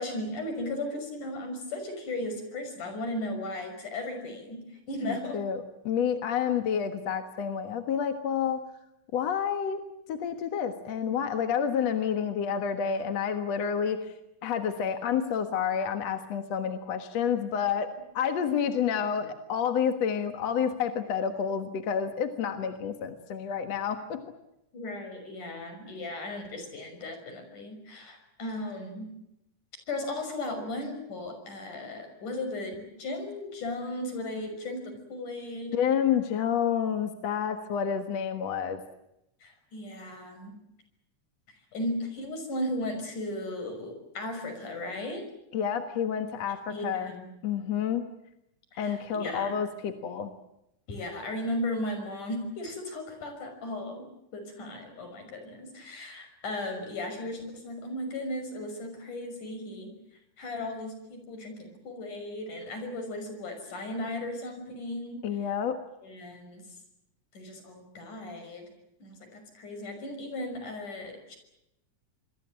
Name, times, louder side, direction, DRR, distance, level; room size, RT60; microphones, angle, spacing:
voice 1, 0.0-5.4 24.7-29.1 29.9-35.8 39.4-40.5 41.7-45.2 46.7-47.3 48.7-49.5 50.9-54.1 54.3-59.9 60.4-65.2 66.0-66.7 67.3-68.7 69.0-71.4, left 1 dB, 80° left, 7 dB, 7.4 m, -36 dB
voice 2, 5.0-8.6 9.1-9.8 10.1-14.1 14.4-24.2 35.7-38.8 45.5-47.1 47.4-48.0 48.8-50.3 65.2-65.8, left 7 dB, 60° left, 7 dB, 2.5 m, -29 dB
27.0 x 22.5 x 7.6 m, 0.85 s
omnidirectional pair, 3.5 m